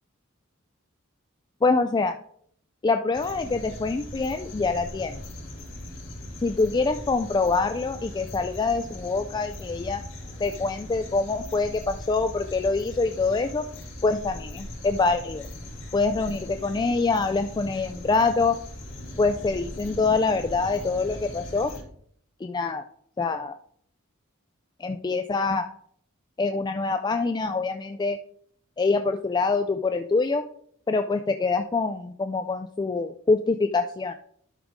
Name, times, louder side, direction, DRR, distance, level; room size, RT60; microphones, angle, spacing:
voice 1, 1.6-2.2 2.8-5.2 6.4-10.0 10.4-13.6 14.0-15.5 15.9-18.6 19.2-21.7 22.4-22.8 23.2-23.6 24.8-25.7 26.4-28.2 28.8-30.4 30.9-34.1, left 3 dB, 20° left, 7 dB, 0.3 m, -25 dB
sound 1, 3.1-21.8, left 1 dB, 70° left, 2.9 m, -40 dB
11.5 x 5.0 x 3.5 m, 0.65 s
head